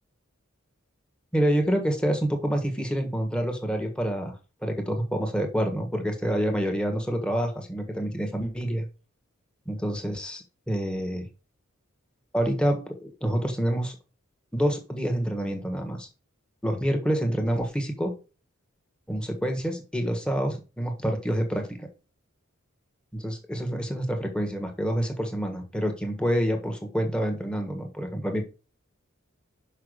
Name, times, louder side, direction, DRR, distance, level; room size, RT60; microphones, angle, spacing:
voice 1, 1.3-4.3 4.6-8.9 9.6-11.3 12.3-14.0 14.5-16.1 16.6-18.1 19.1-21.9 23.1-28.4, equal, 5° left, 4 dB, 1.4 m, -27 dB
5.8 x 5.7 x 6.5 m, 0.33 s
head